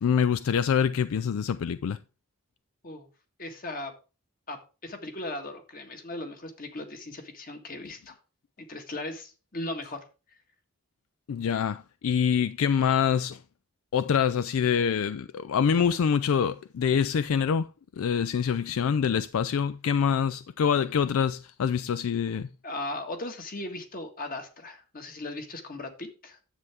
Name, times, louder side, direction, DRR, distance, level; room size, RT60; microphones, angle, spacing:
voice 1, 0.0-2.0 11.3-13.4 13.9-17.7 18.0-22.5, left 7 dB, 70° left, 0.3 m, -25 dB
voice 2, 3.4-3.9 4.5-8.1 8.6-10.0 22.6-26.4, left 2 dB, 40° left, 1.7 m, -37 dB
10.0 x 7.9 x 3.5 m
head